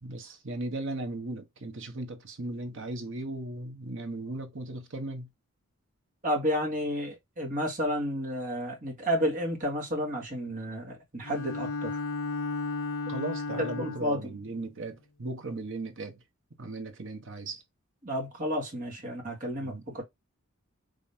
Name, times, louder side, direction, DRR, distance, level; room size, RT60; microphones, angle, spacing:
voice 1, 0.0-5.3 13.1-16.2 16.6-17.6 19.0-19.2 19.6-19.9, right 2 dB, 60° right, 1.1 m, -37 dB
voice 2, 6.2-12.0 13.6-14.2 18.0-20.0, equal, 40° right, 2.0 m, -31 dB
Bowed string instrument, 11.2-14.3, left 3 dB, 70° left, 0.7 m, -34 dB
5.2 x 3.2 x 2.7 m
head